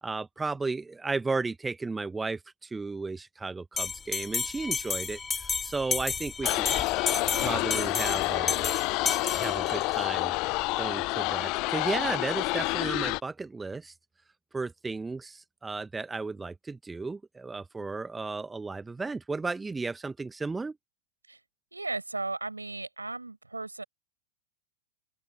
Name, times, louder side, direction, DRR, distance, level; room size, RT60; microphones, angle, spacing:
voice 1, 0.0-6.7 7.4-8.7 9.3-10.3 10.8-13.9 14.5-20.8, right 3 dB, 10° right, 1.0 m, -34 dB
Bell, 3.8-10.0, left 5 dB, 15° left, 2.3 m, -32 dB
sound 1, 6.4-13.2, left 26 dB, 40° left, 0.4 m, -29 dB
voice 2, 21.7-23.8, right 2 dB, 80° right, 5.6 m, -35 dB
open air
figure-of-eight pair, 90°, 0 cm